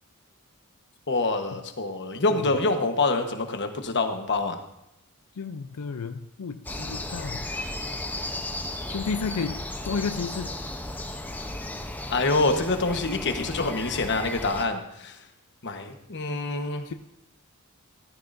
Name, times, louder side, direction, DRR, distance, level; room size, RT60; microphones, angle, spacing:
voice 1, 1.1-4.6 12.1-15.2 15.6-16.8, left 3 dB, 50° left, 6 dB, 1.2 m, -26 dB
voice 2, 5.3-7.5 8.9-9.6 9.8-10.5 16.8-16.9, left 5 dB, 85° left, 8 dB, 0.5 m, -32 dB
sound 1, 6.7-14.6, left 1 dB, 10° left, 0.7 m, -35 dB
14.0 x 14.0 x 2.6 m, 0.83 s
head